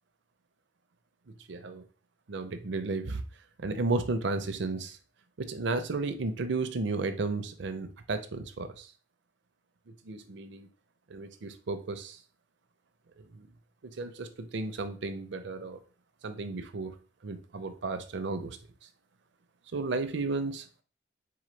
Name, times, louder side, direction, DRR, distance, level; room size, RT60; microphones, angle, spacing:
voice 1, 1.5-1.8 2.3-3.2 3.6-5.0 5.5-8.9 10.0-10.7 11.1-12.2 13.3-13.5 13.8-15.8 16.2-16.9 17.2-18.6 19.7-20.6, right 3 dB, 60° right, 9 dB, 0.5 m, -33 dB
3.9 x 3.8 x 3.2 m, 0.38 s
head